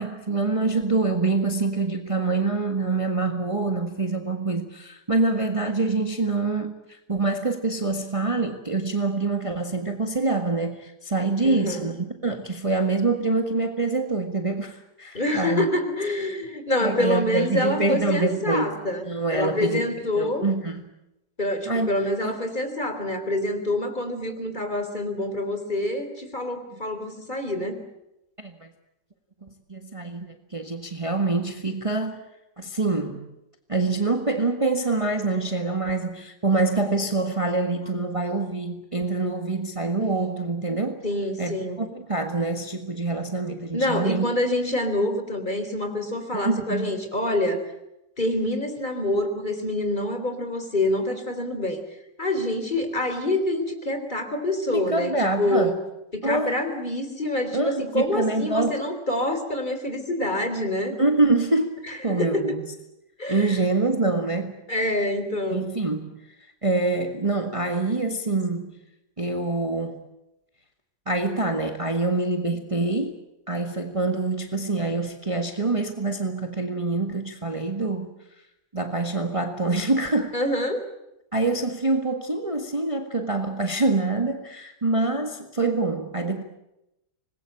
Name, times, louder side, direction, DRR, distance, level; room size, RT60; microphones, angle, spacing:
voice 1, 0.0-15.7 16.8-18.7 19.0-19.8 20.2-20.9 21.6-21.9 22.2-22.3 28.4-28.7 29.4-32.2 32.6-33.3 33.7-41.0 41.4-44.3 46.3-46.9 54.7-55.7 56.2-56.6 57.5-58.8 61.0-62.6 63.3-64.5 65.5-66.1 66.6-68.8 69.2-70.0 71.1-73.2 73.5-78.1 78.7-80.4 81.3-86.4, right 3 dB, 20° right, 6 dB, 1.6 m, -25 dB
voice 2, 11.4-11.9 15.1-20.5 21.4-27.8 41.0-41.9 43.7-47.6 48.2-51.8 52.2-55.7 56.1-60.9 61.9-62.6 63.2-63.6 64.7-65.7 80.3-80.8, left 1 dB, 30° left, 7 dB, 3.8 m, -26 dB
25.5 x 21.0 x 8.8 m, 0.89 s
omnidirectional pair, 1.7 m